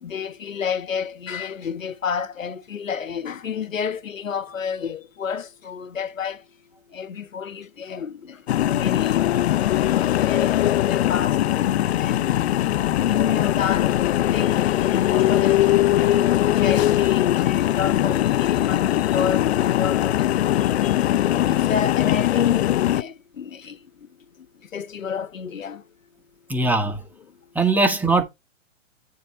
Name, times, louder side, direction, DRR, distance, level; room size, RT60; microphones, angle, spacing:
voice 1, 0.0-6.4 6.9-11.4 12.0-12.4 12.8-13.9 14.2-20.9 21.3-23.8 24.7-25.8, left 7 dB, 90° left, 1.2 m, -30 dB
sound 1, 8.5-23.0, left 13 dB, 55° left, 0.7 m, -20 dB
voice 2, 26.5-27.0 27.5-28.2, right 3 dB, 5° right, 2.0 m, -20 dB
9.5 x 5.5 x 4.3 m
hypercardioid pair, 130°, 38 cm